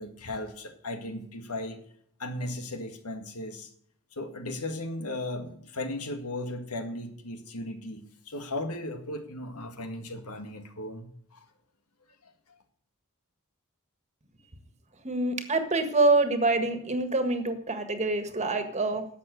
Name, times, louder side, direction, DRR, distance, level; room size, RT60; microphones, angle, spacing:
voice 1, 0.0-1.8 2.2-3.7 4.1-11.5 12.2-12.3, left 1 dB, 90° left, 6 dB, 1.9 m, -36 dB
voice 2, 15.0-19.0, right 2 dB, 30° right, 8 dB, 1.6 m, -26 dB
11.5 x 7.6 x 7.7 m, 0.65 s
head